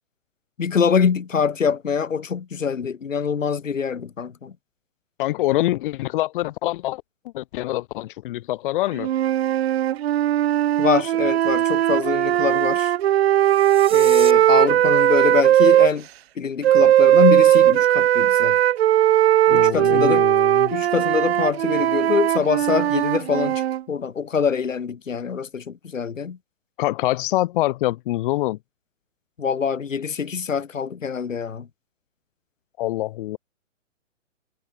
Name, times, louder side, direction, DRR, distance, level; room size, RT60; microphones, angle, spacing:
voice 1, 0.6-4.5 10.8-12.9 13.9-16.1 16.4-18.6 19.5-20.3 20.7-23.6 23.9-26.4 29.4-31.7, left 6 dB, 75° left, 3.4 m, -24 dB
voice 2, 5.2-7.0 7.3-9.1 19.5-20.7 26.8-28.6 32.8-33.4, left 16 dB, 40° left, 2.4 m, -25 dB
sound 1, 9.0-15.9 16.6-23.8, right 12 dB, 55° right, 0.7 m, -18 dB
sound 2, 13.4-14.3, right 9 dB, 15° right, 1.8 m, -35 dB
hypercardioid pair, 130°, 39 cm